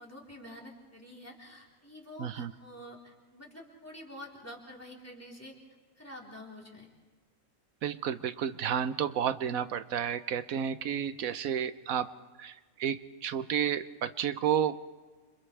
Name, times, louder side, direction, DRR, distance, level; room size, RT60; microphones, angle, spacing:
voice 1, 0.0-5.5 6.0-6.9, left 1 dB, 10° left, -3 dB, 3.7 m, -48 dB
voice 2, 2.2-2.5 7.8-12.1 12.4-14.8, right 8 dB, 80° right, 12 dB, 1.3 m, -31 dB
30.0 x 26.5 x 3.4 m, 1.3 s
omnidirectional pair, 1.5 m